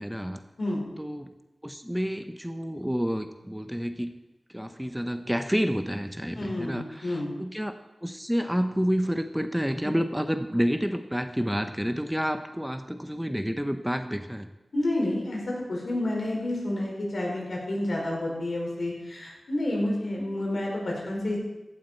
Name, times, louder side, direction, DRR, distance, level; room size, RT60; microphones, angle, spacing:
voice 1, 0.0-0.4 1.0-1.3 1.6-4.1 4.5-7.7 8.0-14.5, equal, 5° right, 8 dB, 0.7 m, -29 dB
voice 2, 6.3-7.3 9.8-9.9 14.7-21.4, left 1 dB, 70° left, -2 dB, 4.9 m, -29 dB
15.5 x 12.0 x 4.4 m, 1.0 s
wide cardioid pair, 75°, 0 cm